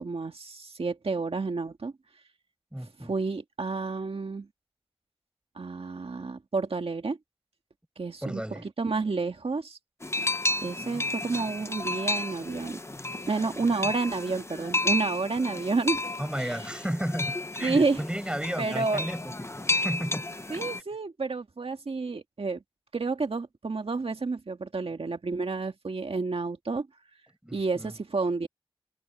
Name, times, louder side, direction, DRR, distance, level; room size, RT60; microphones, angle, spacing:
voice 1, 0.0-1.9 2.8-4.5 5.6-7.2 8.0-9.8 10.6-12.8 13.3-16.0 16.4-16.6 17.6-18.0 18.6-19.1 20.5-22.6 22.9-26.9 27.5-28.5, right 4 dB, 85° right, 1.8 m, -30 dB
voice 2, 2.7-3.1 8.2-8.6 13.8-13.9 16.2-19.5 19.7-20.2 27.4-27.9, equal, 10° right, 5.6 m, -33 dB
sound 1, 10.0-20.8, left 2 dB, 30° left, 0.8 m, -32 dB
wide cardioid pair, 55°, 10 cm